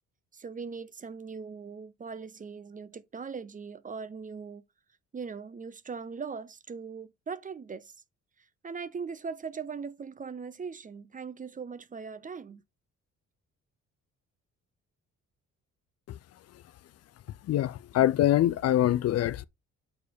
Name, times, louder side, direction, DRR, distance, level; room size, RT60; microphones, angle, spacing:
voice 1, 0.3-4.6 5.1-7.9 8.6-12.6, right 5 dB, 25° right, 0.5 m, -40 dB
voice 2, 17.5-19.4, left 13 dB, 55° left, 0.4 m, -24 dB
6.5 x 4.5 x 3.5 m
cardioid pair, 90°, 30 cm